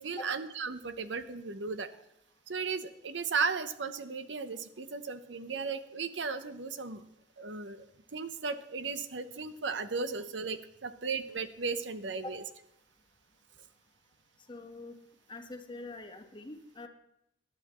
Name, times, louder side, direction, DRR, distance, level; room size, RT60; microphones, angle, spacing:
voice 1, 0.0-1.9 2.5-7.0 7.4-7.9 8.1-12.4, right 5 dB, 90° right, 11 dB, 0.9 m, -35 dB
voice 2, 14.5-15.0 15.3-16.9, left 2 dB, 25° left, 5 dB, 1.3 m, -44 dB
19.0 x 11.5 x 3.1 m, 0.77 s
head